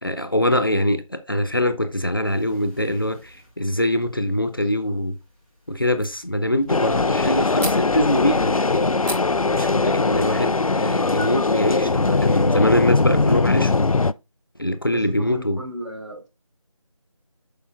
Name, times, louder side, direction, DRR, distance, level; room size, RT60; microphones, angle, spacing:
voice 1, 0.0-5.2 5.7-8.9 9.5-13.7 14.6-15.6, left 1 dB, 40° left, 0.7 m, -23 dB
sound 1, 2.2-10.6, right 1 dB, 5° right, 2.1 m, -42 dB
sound 2, 6.7-14.1, left 3 dB, 80° left, 0.5 m, -20 dB
voice 2, 14.8-16.3, right 1 dB, 55° right, 4.3 m, -35 dB
7.9 x 6.6 x 2.4 m
figure-of-eight pair, 170°, 18 cm